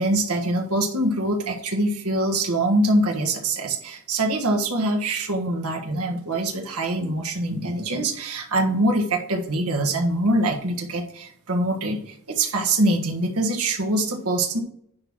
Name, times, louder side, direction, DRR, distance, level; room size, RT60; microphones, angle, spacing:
voice 1, 0.0-14.6, right 1 dB, 75° right, 2 dB, 1.4 m, -24 dB
10.5 x 3.7 x 6.0 m, 0.69 s
head